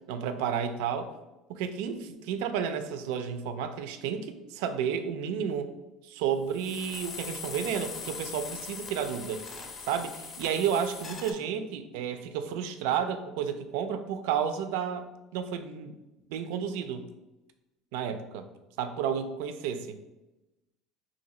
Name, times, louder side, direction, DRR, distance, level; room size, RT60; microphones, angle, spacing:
voice 1, 0.1-1.1 1.5-5.7 6.0-9.4 9.9-15.0 15.3-16.0 16.3-17.0 17.9-18.5 18.8-20.0, right 8 dB, 85° right, 9 dB, 0.3 m, -31 dB
sound 1, 6.5-11.3, left 5 dB, 25° left, 0.5 m, -41 dB
2.8 x 2.6 x 4.1 m, 1.0 s
cardioid pair, 130°, 0 cm